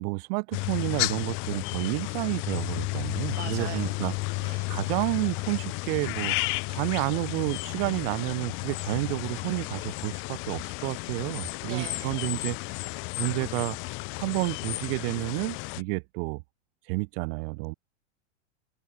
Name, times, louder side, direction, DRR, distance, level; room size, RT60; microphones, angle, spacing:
voice 1, 0.0-4.1 4.7-6.4 6.7-12.6 13.1-13.8 14.2-16.4 16.9-17.7, right 32 dB, 55° right, 2.0 m, -30 dB
sound 1, 0.5-15.8, left 28 dB, 35° left, 0.4 m, -33 dB
voice 2, 3.3-4.1 4.4-4.7 11.6-12.3, right 13 dB, 85° right, 2.1 m, -41 dB
supercardioid pair, 120°, 35 cm